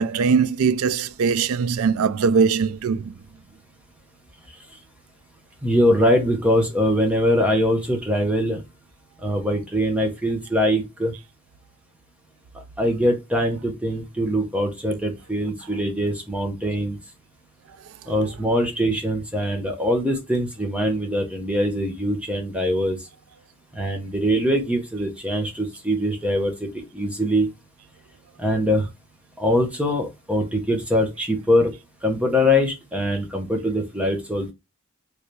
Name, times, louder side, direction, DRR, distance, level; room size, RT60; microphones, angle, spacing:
voice 1, 0.0-3.1, right 5 dB, 80° right, 0.4 m, -21 dB
voice 2, 5.6-8.6 9.2-11.1 12.8-17.0 18.1-23.0 23.7-27.5 28.4-28.9 29.4-31.7 32.0-34.5, equal, 5° right, 0.6 m, -22 dB
3.2 x 2.6 x 3.1 m
head